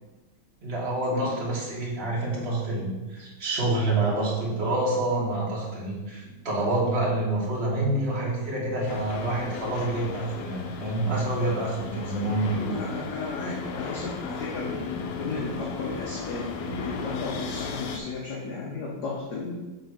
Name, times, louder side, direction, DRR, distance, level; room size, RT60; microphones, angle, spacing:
voice 1, 0.6-12.8, right 2 dB, 30° right, -4 dB, 1.6 m, -27 dB
sound 1, 8.9-18.0, left 5 dB, 80° left, 1.6 m, -36 dB
voice 2, 12.7-19.5, left 3 dB, 55° left, -4 dB, 1.3 m, -34 dB
5.6 x 3.7 x 6.0 m, 1.1 s
omnidirectional pair, 2.4 m